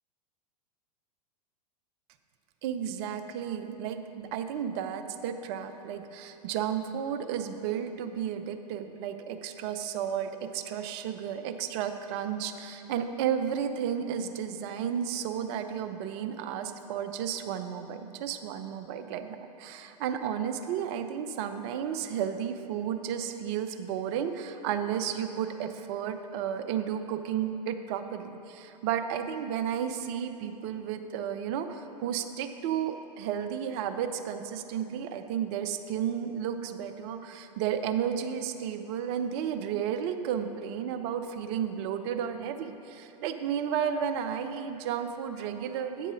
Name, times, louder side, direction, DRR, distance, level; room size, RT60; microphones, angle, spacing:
voice 1, 2.6-46.1, right 8 dB, 40° right, 8 dB, 0.5 m, -33 dB
8.2 x 5.4 x 5.1 m, 2.8 s
figure-of-eight pair, 95°, 21 cm